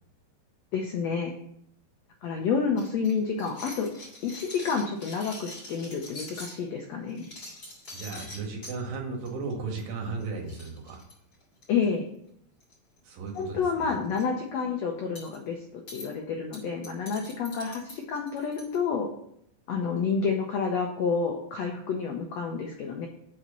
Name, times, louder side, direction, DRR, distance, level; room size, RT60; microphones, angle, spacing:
voice 1, 0.7-1.3 2.2-3.9 4.2-7.3 11.7-12.1 13.3-19.1 19.7-23.1, left 5 dB, 80° left, 2 dB, 1.5 m, -29 dB
sound 1, 2.8-6.6 7.1-8.8 9.2-9.5 9.8-9.9 10.2-10.3 10.5-11.8 12.6-13.0 13.3-13.4 13.8-14.2 15.2-15.4 15.9-16.1 16.5-18.8, left 2 dB, 35° left, 3.7 m, -44 dB
voice 2, 7.9-11.0 13.0-13.9, right 4 dB, 75° right, 1 dB, 3.3 m, -35 dB
7.7 x 4.3 x 6.7 m, 0.70 s
omnidirectional pair, 4.0 m